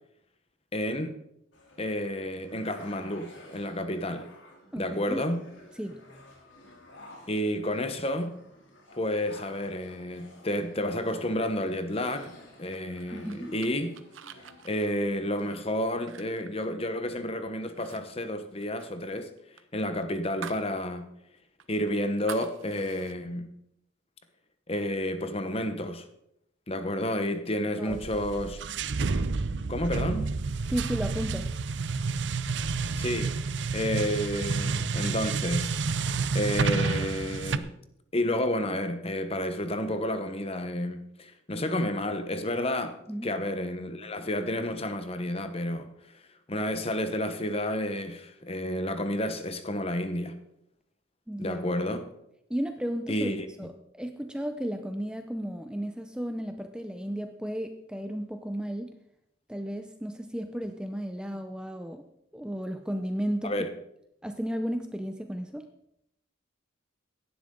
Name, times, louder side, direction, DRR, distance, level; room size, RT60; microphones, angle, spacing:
voice 1, 0.7-1.2 1.8-4.3 4.8-5.4 7.3-8.4 8.9-14.0 14.6-19.3 19.7-21.1 21.7-23.5 24.7-26.1 26.7-28.6 29.7-30.3 33.0-33.4 33.7-35.7 36.3-37.7 38.1-45.9 46.1-46.2 46.5-50.4 51.4-52.1 53.1-53.5 63.4-63.7, left 1 dB, 30° left, 1.1 m, -30 dB
sound 1, 1.5-14.9, equal, 65° left, 3.3 m, -51 dB
voice 2, 4.7-5.2 5.8-6.0 13.1-13.5 27.8-28.0 30.7-31.5 43.1-43.3 51.3-51.6 52.5-53.3 53.6-58.9 59.5-62.0 62.3-63.5 64.2-65.7, equal, 5° right, 0.6 m, -34 dB
sound 2, 12.7-17.3 17.7-18.0 18.3-20.7 21.1-21.2 21.6-23.2, right 7 dB, 80° right, 0.9 m, -46 dB
sound 3, 27.9-37.6, right 4 dB, 60° right, 0.6 m, -30 dB
17.0 x 11.5 x 3.8 m
head